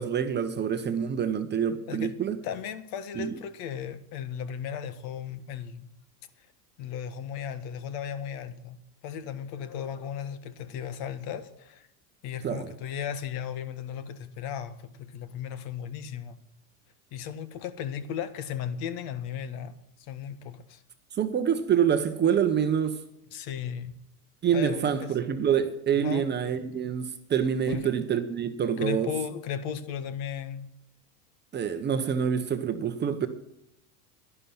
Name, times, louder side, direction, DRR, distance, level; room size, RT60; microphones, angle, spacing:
voice 1, 0.0-2.4 3.2-3.3 12.4-12.7 21.2-23.0 24.4-29.1 31.5-33.3, right 8 dB, 20° right, 0.9 m, -26 dB
voice 2, 2.4-5.9 6.8-8.8 9.0-11.9 12.2-16.4 17.1-19.7 20.0-20.8 23.3-23.9 24.5-25.1 26.0-26.3 27.7-28.0 28.8-30.7, left 8 dB, 50° left, 1.5 m, -36 dB
11.5 x 11.0 x 5.7 m
supercardioid pair, 125°, 47 cm